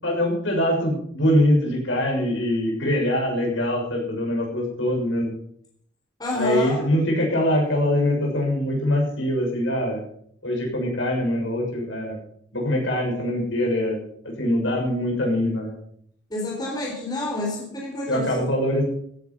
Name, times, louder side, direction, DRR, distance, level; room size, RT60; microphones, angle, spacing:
voice 1, 0.0-5.3 6.3-10.0 10.4-12.2 12.5-14.0 14.2-15.7 18.1-18.9, left 1 dB, 75° left, 0 dB, 6.5 m, -23 dB
voice 2, 6.2-6.8 16.3-18.5, left 2 dB, 20° left, -1 dB, 4.2 m, -28 dB
15.5 x 10.5 x 5.6 m, 0.64 s
head